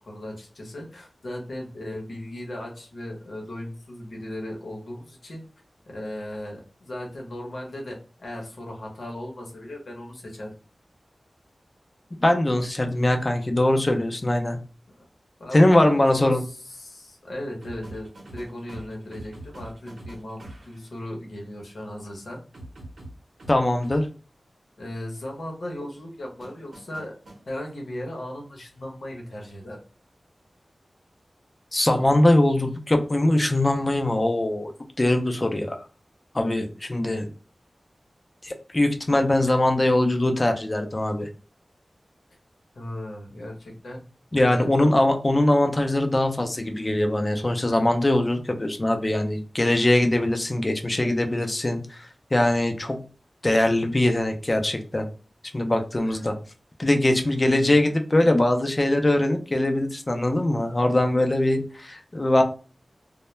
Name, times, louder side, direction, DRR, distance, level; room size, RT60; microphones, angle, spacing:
voice 1, 0.0-5.4 5.9-10.5 14.9-15.0 15.4-22.4 24.8-27.1 27.5-29.8 42.7-44.0 44.4-45.2 56.0-56.2 57.2-57.8, left 1 dB, 85° left, -1 dB, 0.8 m, -37 dB
voice 2, 12.2-14.6 15.5-16.4 23.5-24.1 31.7-34.7 35.0-35.8 36.3-37.3 38.4-41.3 44.3-53.0 53.4-55.1 55.5-56.3 56.8-62.4, left 1 dB, 35° left, 5 dB, 0.4 m, -22 dB
sound 1, 17.6-20.8 22.5-24.0 26.4-27.4 29.4-29.6, right 1 dB, 90° right, 0.8 m, -43 dB
2.2 x 2.1 x 3.0 m, 0.36 s
wide cardioid pair, 80°, 0 cm